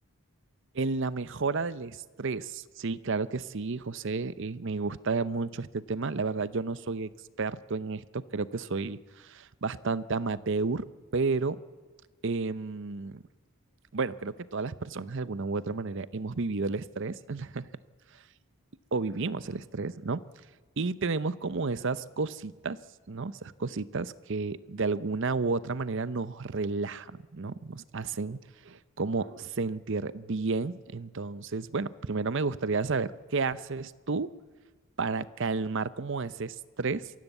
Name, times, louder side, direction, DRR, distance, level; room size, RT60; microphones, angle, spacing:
voice 1, 0.7-7.1 7.4-10.9 11.1-11.6 12.2-13.2 13.9-17.7 18.9-20.2 20.8-22.8 23.1-34.3 35.0-37.1, right 4 dB, 55° right, 16 dB, 0.7 m, -32 dB
23.5 x 16.0 x 8.2 m, 1.3 s
head